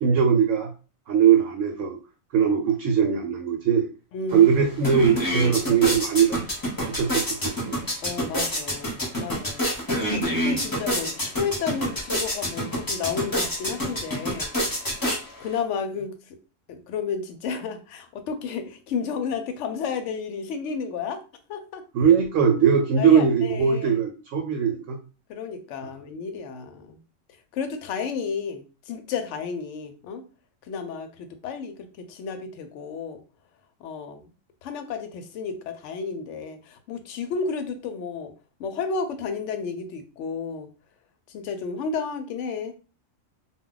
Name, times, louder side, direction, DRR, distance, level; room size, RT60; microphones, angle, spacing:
voice 1, 0.0-0.7 1.1-2.0 2.3-3.9 4.3-6.4 6.8-7.8 21.9-25.0, right 7 dB, 70° right, 2 dB, 0.9 m, -20 dB
voice 2, 4.1-4.6 8.0-14.5 15.4-16.4 16.7-21.2 21.5-21.8 23.0-23.9 25.3-27.0 27.5-30.2 30.7-33.2 33.8-34.3 34.6-38.3 38.6-40.7 41.3-42.7, left 5 dB, 70° left, 7 dB, 0.8 m, -32 dB
sound 1, 4.3-4.4 4.7-15.6, equal, 20° left, 0.7 m, -28 dB
2.2 x 2.2 x 3.7 m, 0.34 s
omnidirectional pair, 1.4 m